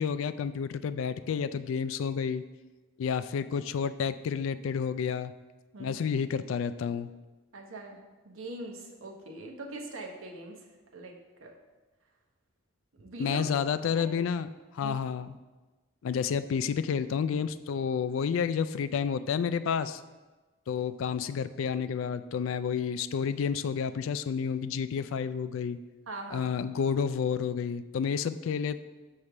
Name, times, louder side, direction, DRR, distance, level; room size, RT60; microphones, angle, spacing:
voice 1, 0.0-2.4 3.0-5.3 5.8-7.1 13.2-14.5 14.7-15.4 16.0-20.0 20.7-25.8 26.3-28.8, left 6 dB, 75° left, 13 dB, 0.3 m, -30 dB
voice 2, 5.7-6.1 7.5-10.7 10.9-11.6 13.0-13.5 14.0-14.1 14.8-15.0 26.1-26.5, right 2 dB, 80° right, 2 dB, 0.9 m, -42 dB
6.6 x 3.2 x 5.9 m, 1.2 s
head